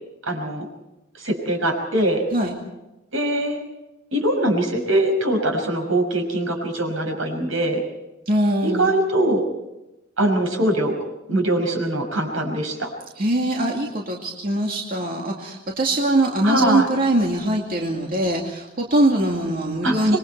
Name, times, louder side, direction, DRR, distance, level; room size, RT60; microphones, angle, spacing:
voice 1, 0.3-0.7 1.2-2.2 3.1-3.6 4.1-7.8 8.6-9.4 10.2-11.0 11.3-12.9 16.4-16.9 19.8-20.0, right 1 dB, 85° right, 3 dB, 5.9 m, -22 dB
voice 2, 8.3-8.9 13.2-20.2, right 1 dB, 45° right, -1 dB, 2.3 m, -22 dB
26.5 x 22.0 x 4.6 m, 0.97 s
head